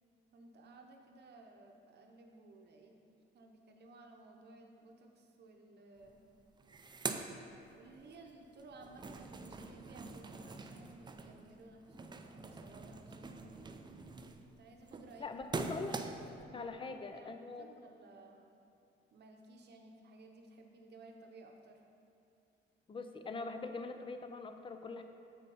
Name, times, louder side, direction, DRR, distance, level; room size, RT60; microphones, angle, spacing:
voice 1, 0.3-3.0 3.3-6.2 7.7-13.9 14.5-15.3 16.4-18.4 19.1-21.8, right 2 dB, 55° right, 2 dB, 0.8 m, -57 dB
sound 1, 6.0-6.1 6.4-8.2 8.5-16.4, right 4 dB, 20° right, 0.4 m, -45 dB
voice 2, 15.2-16.0 16.5-17.7 22.9-25.0, left 3 dB, 25° left, 7 dB, 0.5 m, -43 dB
7.6 x 5.3 x 4.1 m, 2.6 s
cardioid pair, 90°, 20 cm